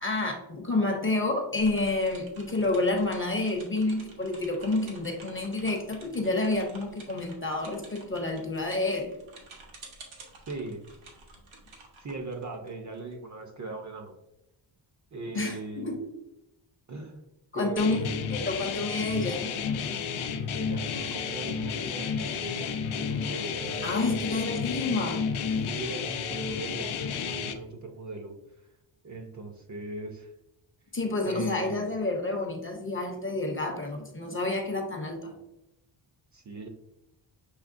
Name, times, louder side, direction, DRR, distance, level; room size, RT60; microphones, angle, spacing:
voice 1, 0.0-9.1 15.3-16.0 17.5-18.0 18.3-19.5 23.8-25.3 30.9-35.3, left 2 dB, 25° left, 2 dB, 0.6 m, -29 dB
sound 1, 1.6-13.1, right 3 dB, 90° right, 1.1 m, -51 dB
voice 2, 10.5-10.8 12.0-14.2 15.1-16.1 16.9-17.2 17.5-18.1 20.5-22.7 23.1-24.2 25.7-28.3 29.0-30.3 31.2-31.8 36.3-36.7, right 2 dB, 40° right, 4 dB, 0.5 m, -39 dB
sound 2, 17.8-27.5, left 6 dB, 85° left, 0.6 m, -31 dB
6.4 x 3.1 x 2.5 m, 0.90 s
wide cardioid pair, 155°, 47 cm